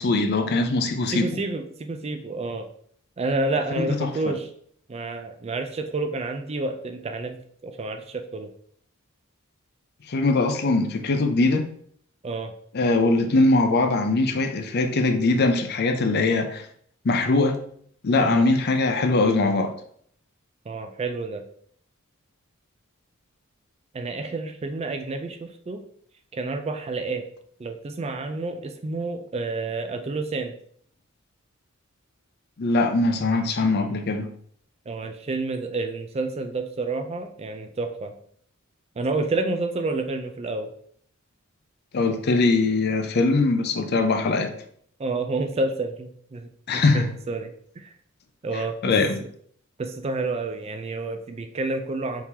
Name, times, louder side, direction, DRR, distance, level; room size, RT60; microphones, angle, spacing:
voice 1, 0.0-1.3 3.7-4.1 10.1-11.7 12.7-16.6 17.0-17.6 18.0-19.7 32.6-34.3 41.9-44.5 46.7-47.1 48.8-49.2, left 3 dB, 50° left, 6 dB, 0.5 m, -21 dB
voice 2, 1.1-2.7 3.2-4.5 4.9-8.5 12.2-12.5 18.2-18.5 20.7-21.4 23.9-25.8 26.3-27.2 27.6-30.5 34.9-38.1 39.0-40.7 45.0-47.9 48.4-49.3 49.8-52.2, right 3 dB, 30° right, 6 dB, 0.4 m, -29 dB
4.5 x 3.6 x 2.8 m, 0.62 s
head